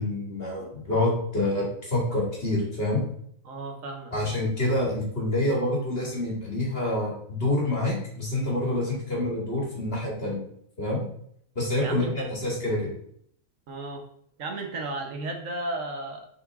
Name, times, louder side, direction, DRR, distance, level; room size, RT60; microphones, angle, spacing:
voice 1, 0.0-3.0 4.1-10.4 10.8-11.0 11.6-12.9, left 1 dB, 40° left, -3 dB, 2.1 m, -27 dB
voice 2, 3.4-4.1 11.8-12.3 13.7-14.1 14.4-16.3, right 2 dB, 65° right, 3 dB, 1.3 m, -34 dB
7.0 x 4.0 x 3.5 m, 0.68 s
omnidirectional pair, 1.5 m